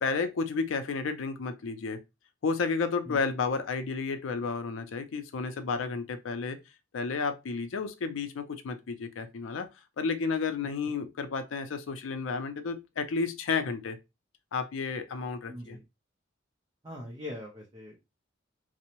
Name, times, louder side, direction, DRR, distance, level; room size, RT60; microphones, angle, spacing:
voice 1, 0.0-2.0 2.4-6.6 6.9-9.7 10.0-14.0 14.5-15.8, left 4 dB, 85° left, 0.4 m, -32 dB
voice 2, 15.5-15.8 16.8-18.0, left 1 dB, 20° right, 0.5 m, -42 dB
2.6 x 2.0 x 2.9 m
head